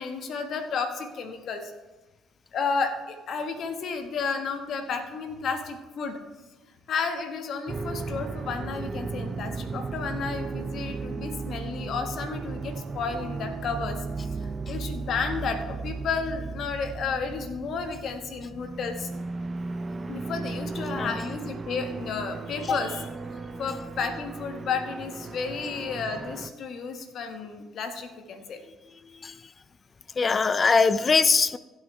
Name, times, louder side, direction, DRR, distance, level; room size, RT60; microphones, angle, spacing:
voice 1, 0.0-1.7 2.5-6.2 6.9-14.0 14.7-19.1 20.1-23.1 23.6-28.6, left 5 dB, 65° left, 1.4 m, -32 dB
sound 1, 7.7-26.5, right 4 dB, 35° right, 0.6 m, -35 dB
voice 2, 30.2-31.6, left 4 dB, 35° left, 0.5 m, -21 dB
16.0 x 8.0 x 3.3 m
supercardioid pair, 70°, 0 cm